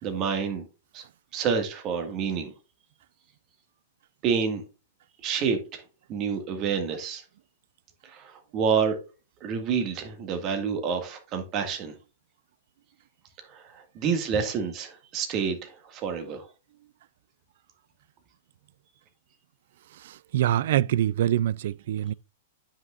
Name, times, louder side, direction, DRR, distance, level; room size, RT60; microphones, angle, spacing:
voice 1, 0.0-0.6 0.9-1.0 1.3-2.5 4.2-4.6 5.2-5.8 6.1-7.2 8.0-9.0 9.4-12.0 13.4-16.5, right 6 dB, 35° right, 1.8 m, -28 dB
voice 2, 20.0-22.1, right 12 dB, 65° right, 0.3 m, -25 dB
9.5 x 5.8 x 2.4 m
hypercardioid pair, 120°, 0 cm